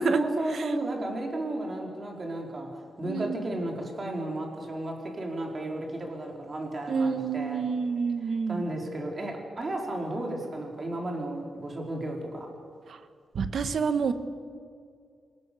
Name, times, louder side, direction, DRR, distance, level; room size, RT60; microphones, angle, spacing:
voice 1, 0.0-7.6 8.5-12.5, right 1 dB, 30° right, 0 dB, 4.5 m, -33 dB
voice 2, 3.1-3.4 6.9-8.6 12.9-13.0 13.3-14.1, right 5 dB, 65° right, 10 dB, 1.4 m, -28 dB
27.0 x 18.0 x 7.0 m, 2.2 s
wide cardioid pair, 130°, 0 cm